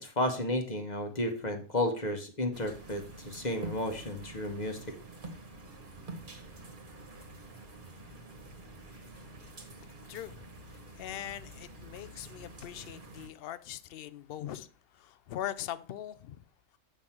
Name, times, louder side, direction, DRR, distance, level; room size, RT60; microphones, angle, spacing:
voice 1, 0.0-4.8, left 1 dB, 35° left, 1.1 m, -32 dB
sound 1, 2.5-13.3, right 2 dB, 35° right, 1.4 m, -47 dB
voice 2, 10.1-10.5 11.0-14.7 15.0-16.4, left 11 dB, 70° left, 0.5 m, -41 dB
8.2 x 5.5 x 4.3 m
omnidirectional pair, 1.5 m